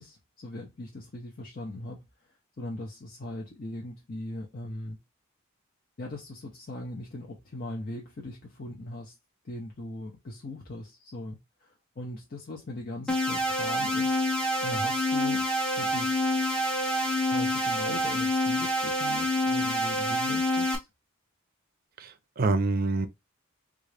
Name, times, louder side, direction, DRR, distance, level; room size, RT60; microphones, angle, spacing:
voice 1, 0.0-2.0 2.6-5.0 6.0-9.1 9.4-14.2 14.6-15.4 15.8-16.3 17.3-20.8, left 1 dB, 40° left, 0.6 m, -39 dB
sound 1, 13.1-20.8, left 1 dB, 5° left, 0.7 m, -27 dB
voice 2, 22.0-23.1, right 3 dB, 40° right, 0.5 m, -26 dB
3.8 x 2.4 x 3.2 m
head